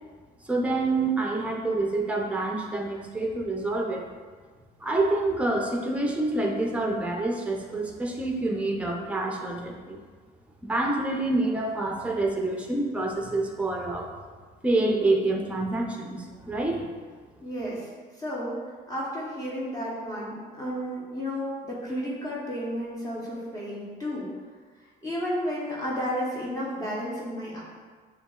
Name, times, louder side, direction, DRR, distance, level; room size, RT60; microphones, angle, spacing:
voice 1, 0.4-4.0 4.8-10.0 10.6-14.1 14.6-16.9, right 2 dB, 5° right, 1 dB, 0.5 m, -27 dB
voice 2, 17.4-18.6 18.9-24.3 25.0-27.6, equal, 20° left, -6 dB, 0.9 m, -32 dB
6.7 x 2.3 x 2.4 m, 1.5 s
cardioid pair, 110°, 17 cm